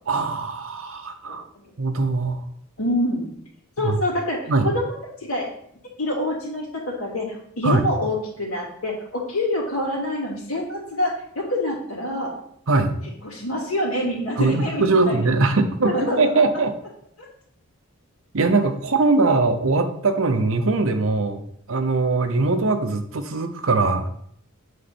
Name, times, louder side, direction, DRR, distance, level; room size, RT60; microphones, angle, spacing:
voice 1, 0.1-1.4 1.8-2.4 3.8-4.0 4.5-4.7 7.6-7.8 12.7-12.9 14.4-16.7 18.3-21.4 21.7-24.1, right 3 dB, 70° right, 8 dB, 0.8 m, -21 dB
voice 2, 1.2-1.7 2.8-3.3 3.8-5.5 6.0-12.3 13.2-15.2 15.8-16.2, left 1 dB, 85° left, -4 dB, 2.9 m, -26 dB
8.3 x 4.2 x 4.3 m, 0.69 s
head